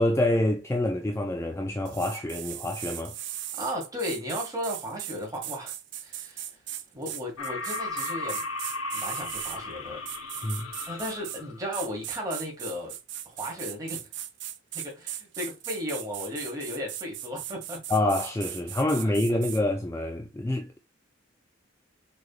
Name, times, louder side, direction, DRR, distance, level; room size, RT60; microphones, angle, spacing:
voice 1, 0.0-3.2 10.4-10.7 17.9-20.8, left 1 dB, 15° left, 0.3 m, -27 dB
sound 1, 1.9-9.6 10.1-11.4 11.7-19.6, right 12 dB, 55° right, 0.5 m, -38 dB
voice 2, 3.5-6.6 6.9-8.4 8.9-10.1 10.9-13.0 13.3-14.0 14.7-18.0 19.0-19.1, equal, 15° right, 1.8 m, -35 dB
sound 2, 7.4-11.6, left 3 dB, 85° left, 0.9 m, -35 dB
6.3 x 3.4 x 2.4 m
head